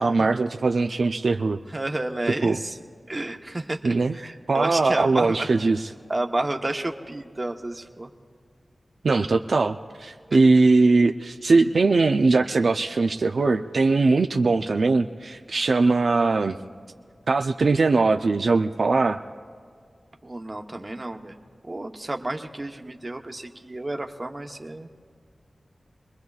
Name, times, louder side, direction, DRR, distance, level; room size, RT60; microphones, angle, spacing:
voice 1, 0.0-1.6 2.4-2.6 3.8-4.2 4.5-5.8 9.0-16.6 17.3-19.2, right 3 dB, 70° right, 6 dB, 0.4 m, -21 dB
voice 2, 1.7-2.8 3.1-5.5 6.1-8.1 10.3-10.4 20.2-21.3 21.7-24.9, right 2 dB, 30° right, 4 dB, 0.9 m, -30 dB
27.5 x 21.5 x 2.4 m, 2.1 s
wide cardioid pair, 100°, 0 cm